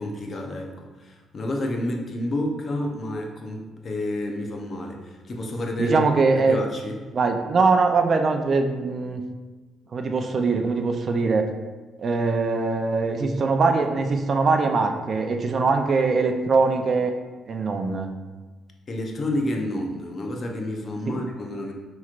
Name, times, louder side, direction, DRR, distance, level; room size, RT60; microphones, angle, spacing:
voice 1, 0.0-6.0 6.4-7.0 18.9-21.7, left 1 dB, 45° left, 1 dB, 0.6 m, -30 dB
voice 2, 5.8-6.6 7.1-9.2 9.9-11.5 12.0-17.1 17.5-18.1 21.1-21.2, right 4 dB, 45° right, 5 dB, 0.4 m, -22 dB
5.7 x 3.0 x 2.4 m, 1.3 s
cardioid pair, 90°, 0 cm